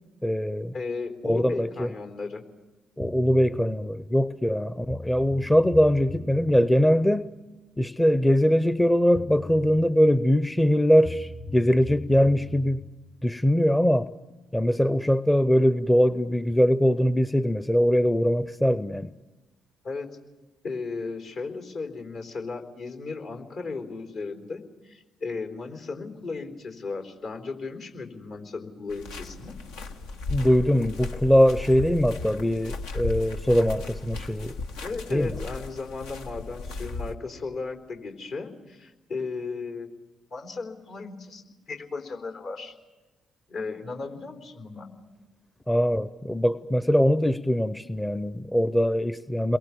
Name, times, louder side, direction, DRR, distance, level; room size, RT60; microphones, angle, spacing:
voice 1, 0.2-0.7 1.2-1.9 3.0-7.3 7.8-12.8 13.2-14.1 14.5-19.1 30.3-34.6 35.1-35.4 45.7-49.6, equal, 10° left, 14 dB, 0.8 m, -22 dB
voice 2, 0.7-2.4 19.8-20.1 20.6-29.6 34.8-39.9 40.3-42.7 43.5-44.9, left 4 dB, 55° left, 5 dB, 3.8 m, -35 dB
sound 1, 3.0-3.5 4.5-4.6 4.9-6.6 8.8-8.9 9.1-9.8 11.0-12.8, left 2 dB, 40° left, 4.8 m, -39 dB
sound 2, 28.9-37.1, left 3 dB, 75° left, 1.6 m, -36 dB
30.0 x 22.5 x 7.1 m, 1.2 s
figure-of-eight pair, 45°, 0 cm